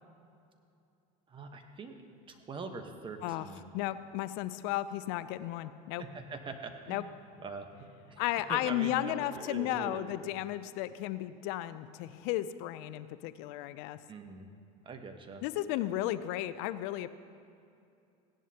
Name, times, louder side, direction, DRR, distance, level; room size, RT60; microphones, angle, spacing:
voice 1, 1.3-2.0 2.3-3.7 6.0-7.1 7.4-8.2 8.5-10.1 14.1-14.5 14.8-15.4, right 4 dB, 25° right, 6 dB, 1.1 m, -43 dB
voice 2, 3.7-6.0 6.9-7.0 8.2-14.0 15.4-17.1, left 14 dB, 65° left, 13 dB, 0.5 m, -34 dB
16.5 x 11.0 x 2.9 m, 2.6 s
supercardioid pair, 110°, 18 cm